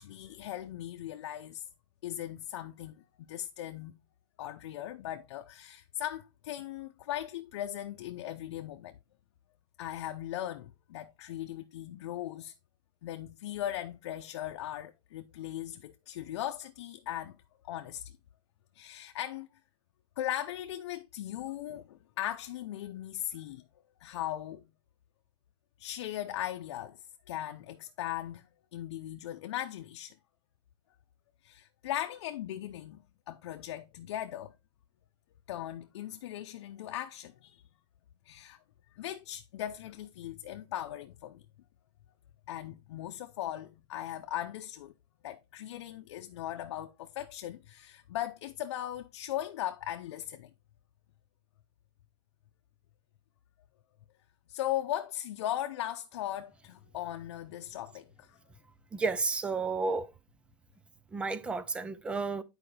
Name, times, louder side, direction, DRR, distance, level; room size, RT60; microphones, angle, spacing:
voice 1, 0.0-1.6 2.0-3.9 4.4-9.0 9.8-12.5 13.0-17.4 17.7-18.1 18.7-19.5 20.2-23.6 24.0-24.6 25.8-30.2 31.4-34.5 35.5-37.6 38.3-38.6 39.0-41.4 42.5-44.9 45.2-50.5 54.5-58.4, left 12 dB, 75° left, 0.7 m, -38 dB
voice 2, 58.9-60.1 61.1-62.4, right 4 dB, 5° right, 0.3 m, -32 dB
10.0 x 4.8 x 3.3 m
supercardioid pair, 170°, 14 cm